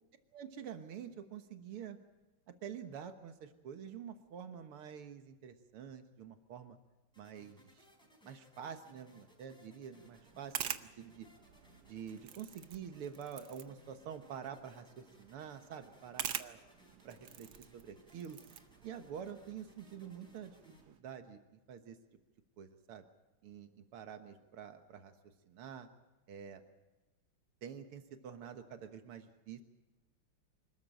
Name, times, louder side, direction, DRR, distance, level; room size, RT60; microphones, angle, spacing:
voice 1, 0.3-2.0 2.6-6.8 7.2-7.8 8.2-11.3 11.9-16.6 17.0-18.4 18.8-20.5 20.9-22.0 22.6-23.0 23.4-25.1 25.5-25.9 26.3-26.6 27.6-29.6, right 8 dB, 90° right, 7 dB, 2.2 m, -47 dB
sound 1, 7.1-20.8, left 1 dB, ahead, 4.0 m, -66 dB
sound 2, 10.0-21.0, right 9 dB, 60° right, 1.2 m, -47 dB
25.5 x 13.5 x 8.9 m, 1.1 s
omnidirectional pair, 2.4 m